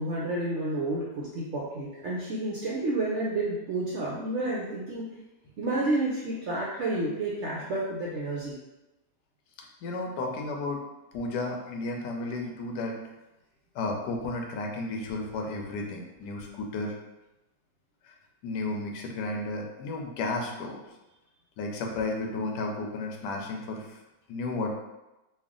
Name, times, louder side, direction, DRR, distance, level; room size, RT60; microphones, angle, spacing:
voice 1, 0.0-5.1 5.6-8.5, right 2 dB, 75° right, -4 dB, 0.6 m, -30 dB
voice 2, 9.8-10.8 11.1-13.0 13.8-16.9 18.4-20.8 21.6-23.8 24.3-24.7, left 2 dB, 80° left, 1 dB, 1.2 m, -33 dB
3.3 x 2.5 x 3.6 m, 0.99 s
omnidirectional pair, 1.8 m